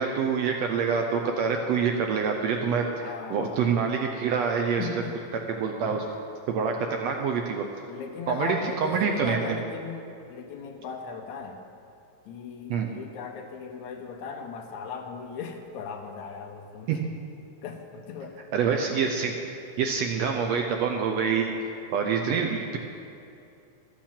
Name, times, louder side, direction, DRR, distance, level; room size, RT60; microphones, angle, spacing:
voice 1, 0.0-4.9 5.5-6.1 6.5-7.6 8.3-9.4 12.7-12.9 16.9-17.0 18.5-19.3 19.8-21.5 21.9-22.8, right 6 dB, 75° right, 3 dB, 1.6 m, -26 dB
voice 2, 3.0-3.6 4.8-5.5 7.9-11.6 12.3-17.0 17.6-18.4, left 5 dB, 75° left, 4 dB, 2.1 m, -37 dB
12.5 x 7.4 x 7.3 m, 2.7 s
omnidirectional pair, 3.5 m